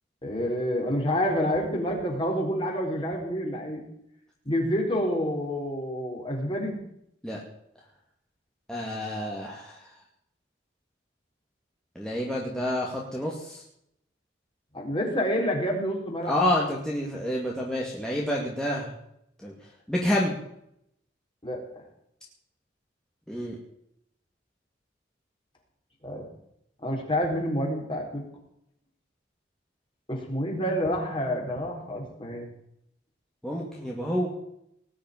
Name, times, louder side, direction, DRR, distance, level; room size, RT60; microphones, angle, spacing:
voice 1, 0.2-3.8 4.5-6.8 14.7-16.4 21.4-21.8 26.0-26.3 26.8-28.2 30.1-32.5, equal, 25° left, 0 dB, 4.2 m, -28 dB
voice 2, 8.7-9.8 12.0-13.6 16.2-18.9 19.4-19.5 19.9-20.3 23.3-23.6 33.4-34.3, left 1 dB, 5° left, -4 dB, 2.3 m, -28 dB
19.0 x 6.7 x 9.6 m, 0.75 s
head